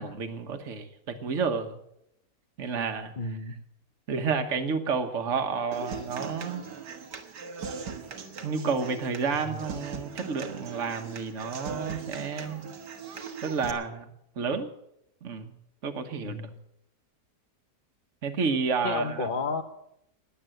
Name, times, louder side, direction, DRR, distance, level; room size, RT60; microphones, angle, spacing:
voice 1, 0.0-1.8 2.6-3.1 4.1-6.6 8.4-12.6 13.4-14.1 14.4-14.7 15.2-15.5 15.8-16.5 18.2-19.3, right 5 dB, 50° right, 6 dB, 1.5 m, -30 dB
voice 2, 3.2-3.5 9.4-9.6 16.2-16.5 18.8-19.6, left 4 dB, 40° left, 7 dB, 0.9 m, -32 dB
Human voice / Acoustic guitar, 5.7-13.7, right 5 dB, 90° right, 2.0 m, -40 dB
20.0 x 8.1 x 7.8 m, 0.78 s
omnidirectional pair, 1.8 m